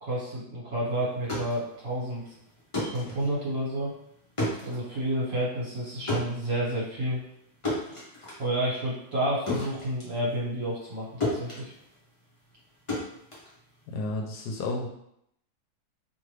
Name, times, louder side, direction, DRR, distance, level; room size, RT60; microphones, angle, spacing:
voice 1, 0.0-2.2 2.9-3.9 4.6-7.2 8.4-11.7, right 1 dB, 55° right, -7 dB, 1.5 m, -30 dB
sound 1, 1.1-11.0 11.2-14.2, left 1 dB, 30° left, 0.6 m, -35 dB
voice 2, 13.9-14.9, left 2 dB, 80° left, 0 dB, 1.1 m, -31 dB
2.8 x 2.4 x 3.2 m, 0.75 s
omnidirectional pair, 1.8 m